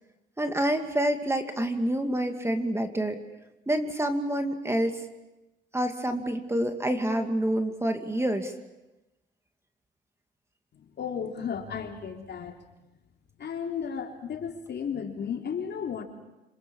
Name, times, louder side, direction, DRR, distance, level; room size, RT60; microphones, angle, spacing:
voice 1, 0.4-3.2 3.7-5.0 5.7-8.5, right 1 dB, 15° right, 6 dB, 2.5 m, -27 dB
voice 2, 11.0-12.6 13.4-16.0, left 7 dB, 60° left, 3 dB, 3.7 m, -34 dB
26.5 x 25.5 x 7.3 m, 1.0 s
cardioid pair, 90°, 20 cm